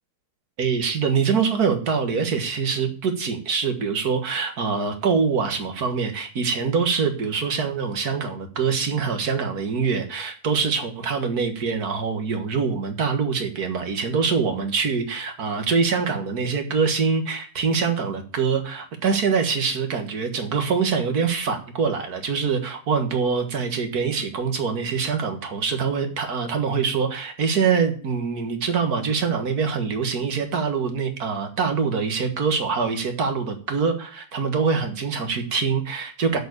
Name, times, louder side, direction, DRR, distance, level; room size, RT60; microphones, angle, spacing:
voice 1, 0.6-36.4, right 5 dB, 65° right, 6 dB, 2.1 m, -24 dB
7.7 x 6.8 x 8.1 m, 0.42 s
omnidirectional pair, 1.7 m